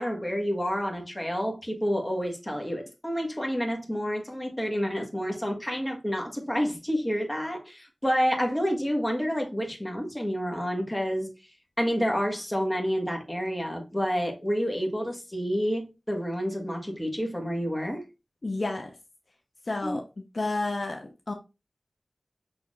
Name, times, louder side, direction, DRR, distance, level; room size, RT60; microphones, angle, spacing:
voice 1, 0.0-11.4 11.8-18.0 19.8-20.0, equal, 15° left, 1.4 m, -29 dB
voice 2, 18.4-18.9 19.7-20.0 20.3-21.3, left 2 dB, 60° left, 0.7 m, -30 dB
6.3 x 3.4 x 2.4 m
wide cardioid pair, 65°, 0 cm